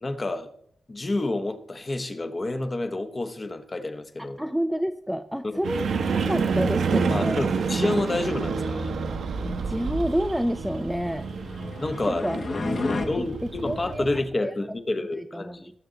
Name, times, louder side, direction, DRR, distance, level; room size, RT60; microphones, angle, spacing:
voice 1, 0.0-0.5 0.9-4.4 5.4-5.6 7.1-8.9 11.8-12.3 13.1-15.7, left 2 dB, 30° left, 9 dB, 0.9 m, -29 dB
voice 2, 4.2-5.9 6.3-7.5 9.7-11.3 12.1-13.3 13.6-14.1 14.4-14.5 15.3-15.6, equal, ahead, 9 dB, 0.4 m, -29 dB
sound 1, 5.6-14.2, right 5 dB, 90° right, 1.2 m, -28 dB
sound 2, 11.1-13.1, left 3 dB, 50° left, 1.3 m, -31 dB
19.0 x 7.1 x 3.9 m, 0.69 s
wide cardioid pair, 125°, 0 cm